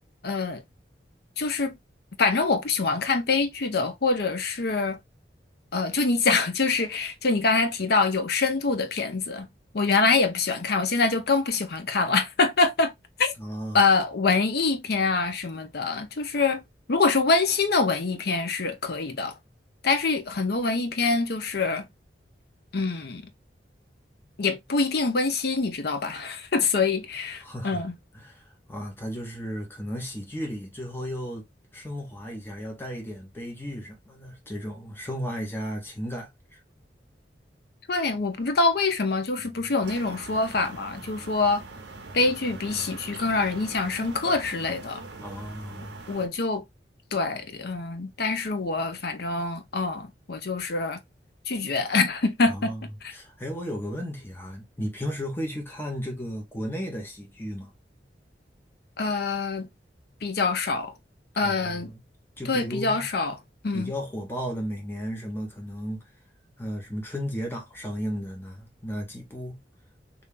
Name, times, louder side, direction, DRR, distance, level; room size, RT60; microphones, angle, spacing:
voice 1, 0.2-0.6 1.4-1.8 2.2-5.0 5.7-9.5 9.7-12.9 13.2-13.3 13.7-16.6 16.9-19.4 19.8-21.9 22.7-23.3 24.4-27.9 37.9-41.6 42.1-45.0 46.1-46.6 47.1-51.0 51.5-53.1 59.0-59.7 60.2-60.9 61.4-61.9 62.4-63.4 63.6-63.9, left 3 dB, 65° left, 0.7 m, -25 dB
voice 2, 13.4-13.8 27.4-27.8 28.1-28.4 28.7-31.5 31.7-36.6 45.2-45.9 52.4-52.8 53.1-57.7 61.4-62.0 62.4-63.1 63.7-66.1 66.6-69.6, equal, 15° left, 1.1 m, -34 dB
sound 1, 39.8-46.3, right 3 dB, 80° right, 0.8 m, -42 dB
2.9 x 2.8 x 3.5 m
head